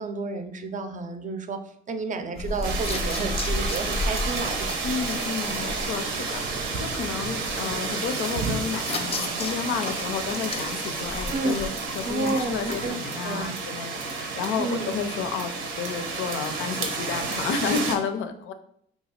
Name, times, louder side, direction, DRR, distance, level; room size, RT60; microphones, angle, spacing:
voice 1, 0.0-1.6 1.9-4.7 11.3-11.7 12.0-13.0 13.2-13.6 14.6-14.9, right 3 dB, 40° right, 7 dB, 0.5 m, -30 dB
sound 1, 2.4-12.9, left 2 dB, 30° left, 0.5 m, -34 dB
sound 2, 2.6-17.9, right 4 dB, 75° right, 0.7 m, -31 dB
voice 2, 4.8-6.4 6.8-18.5, left 6 dB, 85° left, 8 dB, 0.4 m, -31 dB
2.9 x 2.3 x 4.2 m, 0.67 s
cardioid pair, 90°, 20 cm